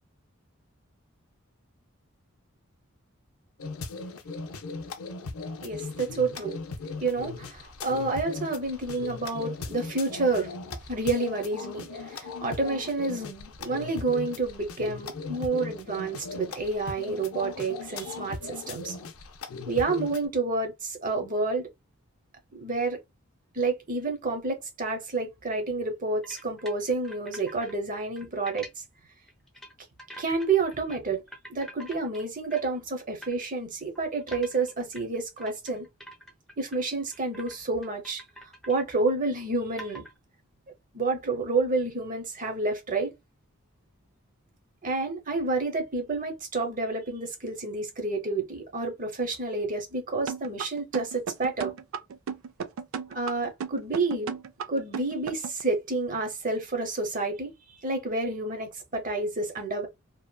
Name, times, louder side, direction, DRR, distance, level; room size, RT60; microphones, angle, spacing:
sound 1, 3.6-20.3, left 4 dB, 90° left, 0.5 m, -38 dB
voice 1, 5.6-6.6 7.0-10.5 10.9-19.0 19.7-21.7 22.5-23.0 23.5-28.7 30.2-31.2 31.5-35.9 36.6-38.2 38.7-40.1 40.9-43.1 44.8-51.7 53.1-54.3 54.7-57.5 57.8-59.9, right 3 dB, 40° right, 0.8 m, -29 dB
sound 2, 26.2-27.7 28.0-28.7 29.3-29.7 30.0-31.0 31.3-32.8 33.2-33.3 34.0-36.8 37.1-37.6 37.8-38.8 39.2-39.3 39.8-40.2, equal, ahead, 0.6 m, -46 dB
sound 3, 50.3-55.6, right 6 dB, 75° right, 0.4 m, -34 dB
2.8 x 2.4 x 2.2 m
head